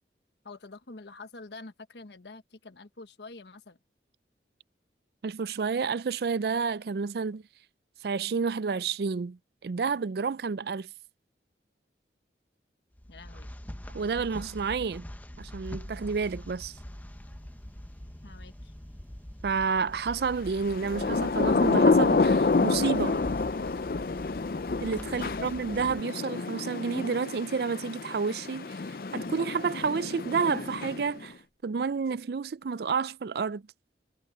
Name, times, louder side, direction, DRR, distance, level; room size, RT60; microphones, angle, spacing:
voice 1, 0.4-3.8 13.1-13.5 18.2-18.7 25.1-25.5, left 3 dB, 80° left, 1.2 m, -46 dB
voice 2, 5.2-7.4 8.0-10.9 13.9-15.0 15.4-16.7 19.4-23.2 24.8-28.8 29.1-31.4 31.6-33.6, right 5 dB, 60° right, 0.4 m, -30 dB
sound 1, 12.9-26.0, equal, 10° left, 0.7 m, -43 dB
sound 2, 15.7-31.6, equal, 10° right, 4.8 m, -61 dB
Thunder / Rain, 20.7-31.3, left 3 dB, 55° left, 0.5 m, -28 dB
head